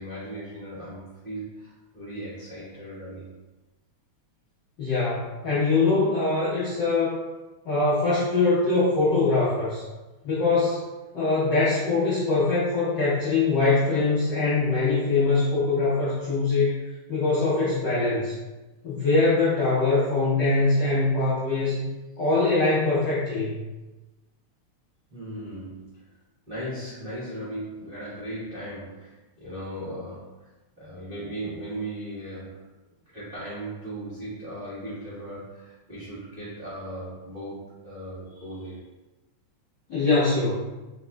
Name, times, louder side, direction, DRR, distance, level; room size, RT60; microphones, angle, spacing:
voice 1, 0.0-3.3 25.1-26.2 26.5-30.5 30.8-32.7 33.1-38.9, right 1 dB, 85° right, -12 dB, 0.4 m, -37 dB
voice 2, 4.8-7.2 7.6-9.8 10.2-10.8 11.1-16.7 17.1-18.3 18.8-21.9 22.2-23.6 39.9-40.7, left 3 dB, 80° left, -10 dB, 0.9 m, -23 dB
4.2 x 3.6 x 2.2 m, 1.1 s
omnidirectional pair, 3.4 m